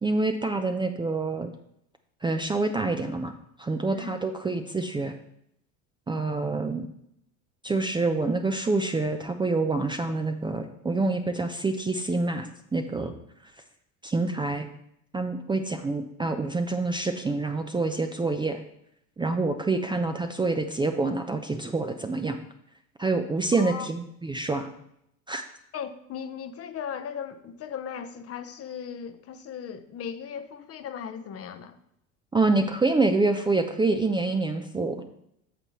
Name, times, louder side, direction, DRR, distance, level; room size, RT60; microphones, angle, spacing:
voice 1, 0.0-1.5 2.2-3.3 3.6-5.1 6.1-6.9 7.6-13.2 14.0-14.7 15.1-18.6 19.2-22.4 23.0-24.7 25.3-25.4 32.3-35.0, right 3 dB, 10° right, 6 dB, 0.5 m, -27 dB
voice 2, 23.5-23.9 25.7-31.8, left 7 dB, 35° left, 10 dB, 0.8 m, -37 dB
9.0 x 6.7 x 3.1 m, 0.75 s
hypercardioid pair, 85°, 41 cm